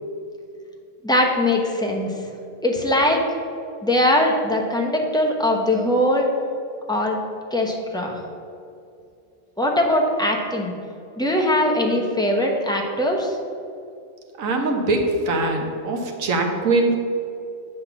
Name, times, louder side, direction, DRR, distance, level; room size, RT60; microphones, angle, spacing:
voice 1, 1.0-2.1 2.6-3.2 3.8-6.3 6.9-7.2 7.5-8.2 9.6-10.7 11.2-13.4, left 1 dB, 5° left, -1 dB, 0.6 m, -21 dB
voice 2, 14.4-17.0, right 2 dB, 80° right, 3 dB, 1.4 m, -22 dB
7.7 x 4.0 x 6.8 m, 2.5 s
omnidirectional pair, 1.4 m